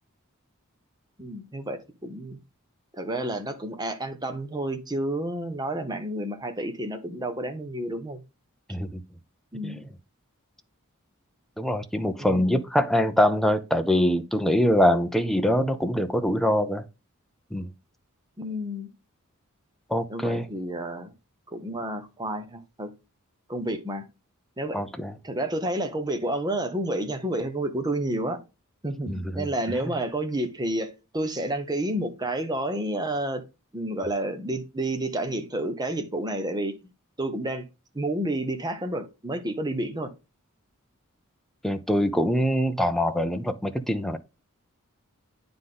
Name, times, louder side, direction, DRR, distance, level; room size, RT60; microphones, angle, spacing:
voice 1, 1.2-2.4 2.9-8.2 9.5-9.8 12.2-12.5 18.4-18.9 20.1-21.1 21.5-22.9 23.5-24.0 24.6-24.8 25.2-28.4 28.8-33.4 33.7-36.7 37.2-37.7 37.9-40.1, right 1 dB, 20° right, 1.0 m, -30 dB
voice 2, 8.7-9.0 9.6-9.9 11.6-16.8 17.5-17.7 19.9-20.4 24.7-25.1 29.1-29.5 41.6-44.2, equal, ahead, 0.6 m, -24 dB
9.6 x 3.8 x 3.8 m
head